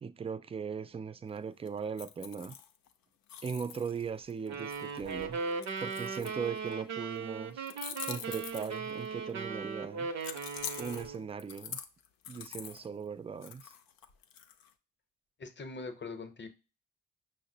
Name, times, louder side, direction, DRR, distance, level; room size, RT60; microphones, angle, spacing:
voice 1, 0.0-2.6 3.4-5.4 5.8-7.7 8.1-10.1 10.8-11.8 12.3-13.7, right 6 dB, 15° right, 0.3 m, -39 dB
sound 1, 1.7-2.9 3.3-6.7 7.7-9.1 10.2-12.9 13.4-14.7, left 8 dB, 70° left, 0.5 m, -45 dB
sound 2, 4.5-11.3, right 5 dB, 50° right, 0.7 m, -38 dB
voice 2, 15.4-16.5, left 3 dB, 30° left, 0.8 m, -42 dB
5.6 x 2.0 x 2.7 m
hypercardioid pair, 45°, 35 cm